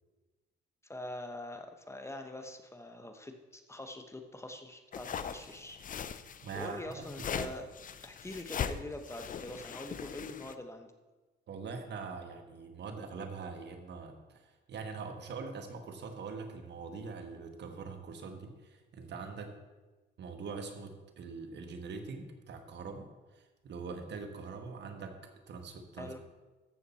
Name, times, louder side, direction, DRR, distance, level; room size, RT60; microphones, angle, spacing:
voice 1, 0.8-5.8 6.5-7.7 8.0-10.9 26.0-26.2, left 1 dB, 15° left, 6 dB, 1.1 m, -44 dB
sound 1, 4.9-10.5, left 7 dB, 45° left, 0.6 m, -40 dB
voice 2, 6.4-7.1 7.3-7.5 11.5-19.6 20.2-26.2, right 4 dB, 60° right, 6 dB, 1.4 m, -43 dB
14.0 x 6.9 x 4.3 m, 1.2 s
cardioid pair, 90°, 20 cm